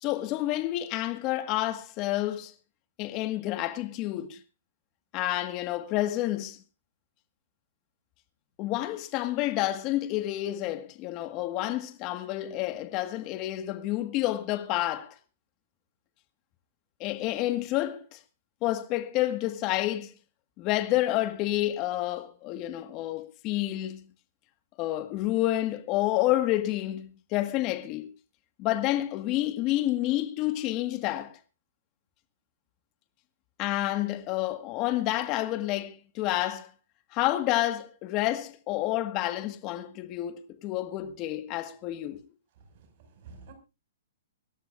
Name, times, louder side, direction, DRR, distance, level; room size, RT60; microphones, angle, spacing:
voice 1, 0.0-2.5 3.0-4.4 5.1-6.6 8.6-15.1 17.0-18.2 18.6-20.1 20.6-24.0 24.8-28.1 28.6-31.3 33.6-36.7 37.1-42.2, left 15 dB, 35° left, 1.7 m, -29 dB
voice 2, 42.5-43.5, right 4 dB, 50° right, 5.9 m, -51 dB
25.0 x 12.5 x 2.5 m
hypercardioid pair, 145°, 0 cm